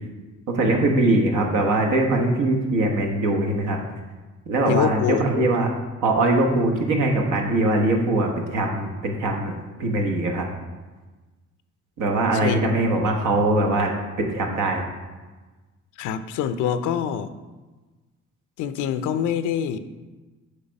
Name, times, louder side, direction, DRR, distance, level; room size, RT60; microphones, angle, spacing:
voice 1, 0.5-3.8 4.5-5.7 6.0-9.5 9.8-10.5 12.0-13.9 14.2-14.8, right 2 dB, 85° right, 2 dB, 1.2 m, -21 dB
voice 2, 4.7-5.2 12.3-12.6 16.0-17.3 18.6-19.8, left 9 dB, 90° left, 12 dB, 0.5 m, -25 dB
8.2 x 3.4 x 5.2 m, 1.2 s
cardioid pair, 90°, 30 cm